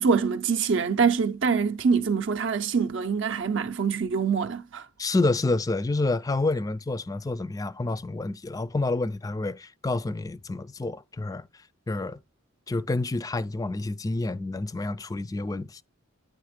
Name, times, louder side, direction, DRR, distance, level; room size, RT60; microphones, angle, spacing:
voice 1, 0.0-4.9, right 5 dB, 60° right, 0.5 m, -24 dB
voice 2, 5.0-11.5 11.9-12.2 12.7-15.8, left 2 dB, 15° left, 0.3 m, -28 dB
9.4 x 3.4 x 4.9 m
head